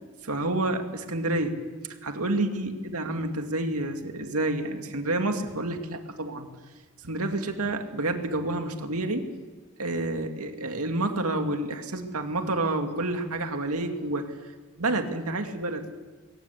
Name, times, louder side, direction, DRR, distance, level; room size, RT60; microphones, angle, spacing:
voice 1, 0.2-1.6 2.0-6.5 7.0-9.2 9.8-14.3 14.8-15.9, right 2 dB, 85° right, 5 dB, 2.3 m, -29 dB
21.5 x 18.5 x 8.3 m, 1.3 s
head